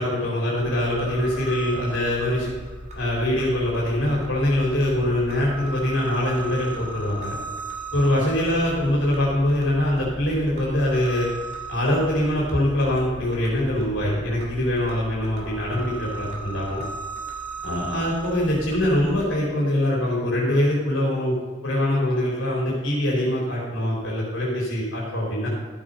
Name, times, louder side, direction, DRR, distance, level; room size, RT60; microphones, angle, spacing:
voice 1, 0.0-2.5 2.9-7.3 7.9-11.3 11.7-16.8 17.6-21.4 21.6-25.5, left 1 dB, 85° left, -5 dB, 3.7 m, -23 dB
sound 1, 0.6-19.3, right 2 dB, 40° right, 2.9 m, -37 dB
13.5 x 7.7 x 5.4 m, 1.5 s
head